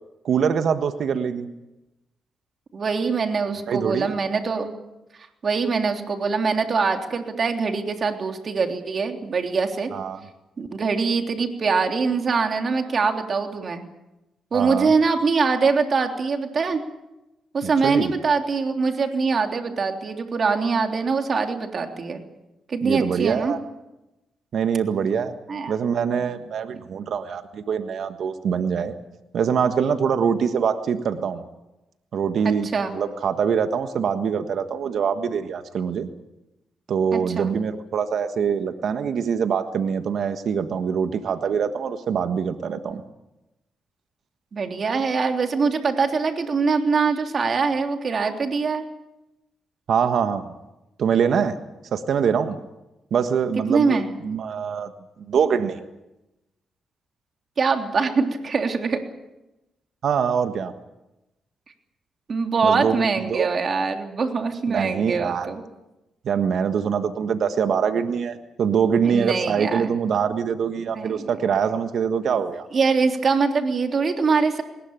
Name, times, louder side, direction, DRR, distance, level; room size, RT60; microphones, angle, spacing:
voice 1, 0.2-1.5 3.7-4.1 9.9-10.2 14.5-14.9 17.6-18.1 22.8-23.6 24.5-25.3 25.7-28.9 29.3-31.4 32.1-32.7 32.9-36.1 36.9-43.0 49.9-50.5 51.0-51.6 51.9-52.6 53.1-54.9 55.3-55.8 60.0-60.7 62.6-63.5 64.7-65.5 66.2-72.7, right 7 dB, 70° right, 8 dB, 1.5 m, -24 dB
voice 2, 2.7-4.7 5.4-9.9 10.6-13.8 14.5-16.8 17.5-22.2 22.7-23.5 25.5-25.8 32.4-32.9 37.1-37.5 44.5-48.9 53.7-54.1 57.6-59.0 62.3-65.6 69.0-69.9 70.9-71.3 72.7-74.6, right 4 dB, 50° right, 4 dB, 3.3 m, -23 dB
20.5 x 20.0 x 9.0 m, 0.96 s
cardioid pair, 65°, 0 cm